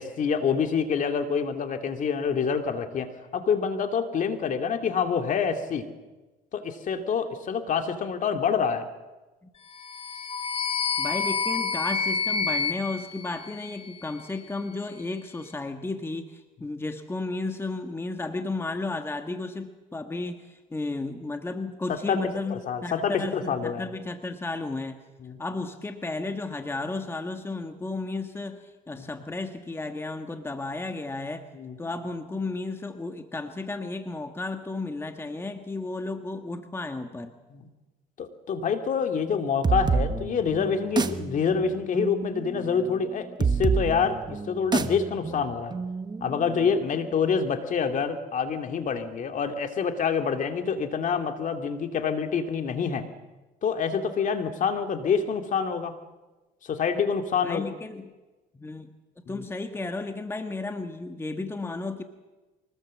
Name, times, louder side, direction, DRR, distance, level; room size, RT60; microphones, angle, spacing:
voice 1, 0.0-5.9 6.5-8.9 21.9-22.2 22.5-23.9 25.2-25.4 29.0-29.1 31.5-31.8 37.5-37.7 38.2-45.7 46.2-53.1 53.6-55.9 56.6-57.7 59.3-59.4, left 6 dB, 50° left, 6 dB, 2.4 m, -27 dB
sound 1, 9.7-14.1, left 5 dB, 35° left, 1.2 m, -29 dB
voice 2, 11.0-25.0 25.4-31.5 31.8-37.3 57.4-58.1 58.5-58.9 59.3-62.0, left 3 dB, 15° left, 7 dB, 1.5 m, -33 dB
sound 2, 39.6-47.0, right 4 dB, 25° right, 1.2 m, -29 dB
24.5 x 19.5 x 7.5 m, 1.2 s
cardioid pair, 110°, 17 cm